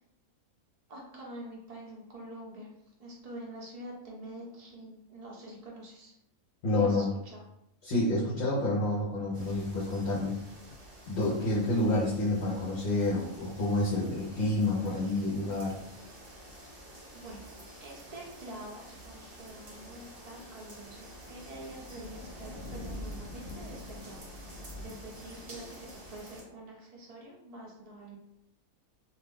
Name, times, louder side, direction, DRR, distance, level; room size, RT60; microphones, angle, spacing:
voice 1, 0.9-2.7 3.0-6.1 6.8-7.4 11.6-12.0 17.1-17.4 17.8-28.2, right 1 dB, 75° right, -3 dB, 0.3 m, -46 dB
voice 2, 6.6-7.1 7.8-10.3 11.1-15.7, left 2 dB, 55° left, -7 dB, 1.0 m, -29 dB
sound 1, 9.3-26.4, equal, 45° right, 1.0 m, -47 dB
2.5 x 2.5 x 3.4 m, 0.82 s
omnidirectional pair, 1.5 m